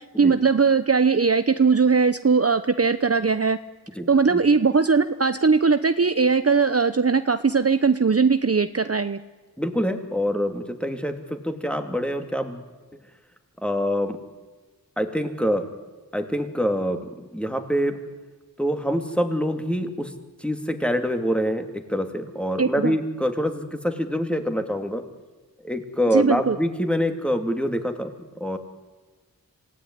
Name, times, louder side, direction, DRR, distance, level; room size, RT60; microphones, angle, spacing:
voice 1, 0.0-3.6 4.1-9.2 22.6-23.0 26.1-26.6, right 5 dB, 40° right, 11 dB, 0.8 m, -20 dB
voice 2, 4.0-4.4 9.6-12.6 13.6-14.2 15.0-15.7 16.1-18.0 18.6-20.1 20.4-25.0 25.6-28.6, equal, 5° left, 6 dB, 2.7 m, -25 dB
27.0 x 17.0 x 9.9 m, 1.3 s
wide cardioid pair, 45°, 36 cm